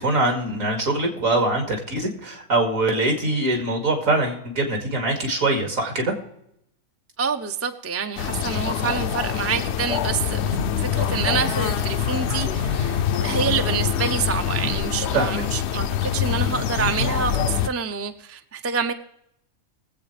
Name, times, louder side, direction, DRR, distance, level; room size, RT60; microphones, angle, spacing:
voice 1, 0.0-6.1 15.1-15.4, right 2 dB, 75° right, 2 dB, 2.7 m, -23 dB
voice 2, 7.2-18.9, right 6 dB, 20° right, 8 dB, 0.3 m, -27 dB
sound 1, 8.2-17.7, left 8 dB, 65° left, 0.8 m, -25 dB
21.5 x 8.0 x 3.3 m, 0.78 s
omnidirectional pair, 1.4 m